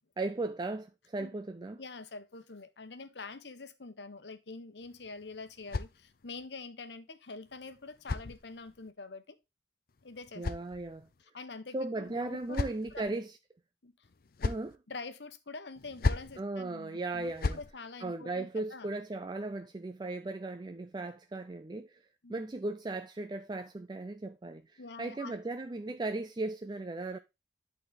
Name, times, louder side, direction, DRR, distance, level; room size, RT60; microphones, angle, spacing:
voice 1, 0.2-1.8 10.4-11.1 11.7-13.4 14.4-14.8 16.4-17.6 18.0-22.0 22.3-27.2, right 2 dB, 25° right, 0.4 m, -37 dB
voice 2, 1.8-9.4 10.0-10.4 11.2-12.6 12.9-13.2 13.8-13.9 14.9-18.9 22.2-22.4 24.8-25.4, left 3 dB, 75° left, 1.1 m, -46 dB
sound 1, 4.8-6.5 7.5-8.9 9.9-11.2 12.0-13.1 14.0-14.8 15.8-16.4 17.1-17.7, left 3 dB, 55° left, 0.5 m, -37 dB
11.5 x 4.2 x 3.8 m
head